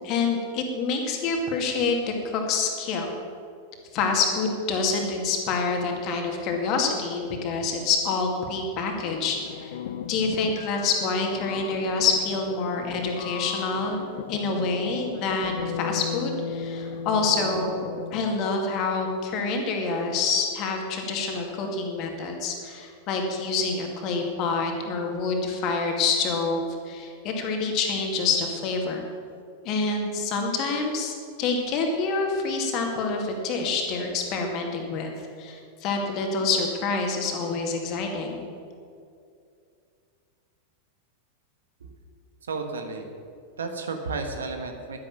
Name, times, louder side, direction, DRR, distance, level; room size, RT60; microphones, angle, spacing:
voice 1, 0.0-2.0 2.2-3.1 3.9-9.8 10.1-14.0 14.3-17.7 18.1-29.0 29.6-35.1 35.4-38.5, left 4 dB, 40° left, 2 dB, 2.3 m, -27 dB
sound 1, 9.0-18.5, left 7 dB, 55° left, 0.7 m, -36 dB
voice 2, 42.4-43.1 43.6-45.0, right 4 dB, 70° right, 5 dB, 1.4 m, -32 dB
11.5 x 10.5 x 7.2 m, 2.4 s
figure-of-eight pair, 90°, 0 cm